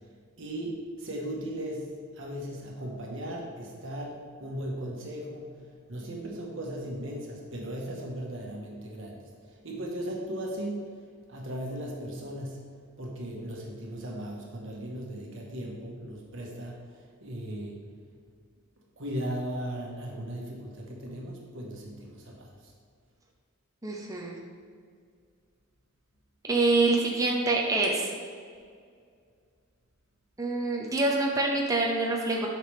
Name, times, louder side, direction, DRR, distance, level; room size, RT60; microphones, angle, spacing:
voice 1, 0.4-5.5 5.9-9.2 9.6-10.9 11.3-12.6 13.0-17.8 19.0-22.7, right 1 dB, 60° right, -1 dB, 1.4 m, -37 dB
voice 2, 23.8-24.4 26.5-28.1 30.4-32.5, right 2 dB, 15° right, -2 dB, 0.8 m, -26 dB
8.5 x 5.8 x 3.5 m, 2.1 s
head